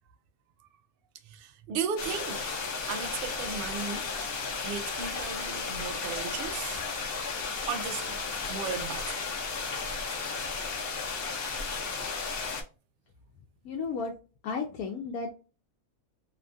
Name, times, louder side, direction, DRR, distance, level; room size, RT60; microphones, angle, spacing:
voice 1, 1.2-2.6 2.9-4.1 4.6-6.8 7.7-8.2 8.5-9.2, right 6 dB, 80° right, 0.5 m, -36 dB
sound 1, 2.0-12.6, left 4 dB, 55° left, 0.8 m, -34 dB
voice 2, 13.6-14.1 14.4-15.3, left 5 dB, 80° left, 1.0 m, -33 dB
2.8 x 2.3 x 2.5 m
omnidirectional pair, 1.5 m